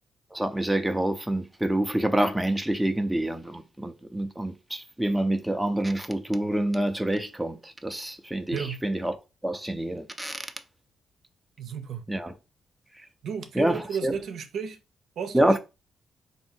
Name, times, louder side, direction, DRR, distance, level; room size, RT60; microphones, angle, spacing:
voice 1, 0.3-9.2 9.4-10.5 12.1-12.3 13.6-14.1 15.3-15.6, right 1 dB, 5° right, 0.6 m, -27 dB
voice 2, 8.5-8.8 11.6-12.1 13.2-14.8 15.2-15.6, right 7 dB, 75° right, 0.7 m, -33 dB
3.6 x 2.8 x 4.4 m
cardioid pair, 75°, 0 cm